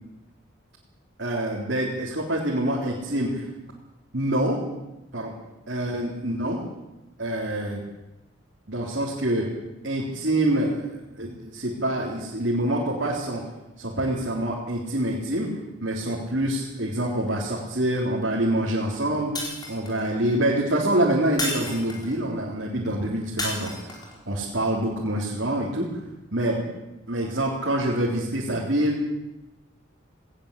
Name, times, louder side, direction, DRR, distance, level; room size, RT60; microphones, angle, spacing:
voice 1, 1.2-3.5 4.1-4.6 5.1-5.3 5.7-6.6 7.2-7.8 8.7-9.5 9.8-13.4 13.8-15.5 15.8-23.9 24.3-26.0 26.3-26.6 27.1-29.0, right 1 dB, 60° right, -4 dB, 3.7 m, -26 dB
Shatter, 19.4-20.1 21.4-22.2 23.4-24.2, left 1 dB, 20° left, 4.4 m, -31 dB
19.0 x 18.5 x 8.4 m, 0.99 s
head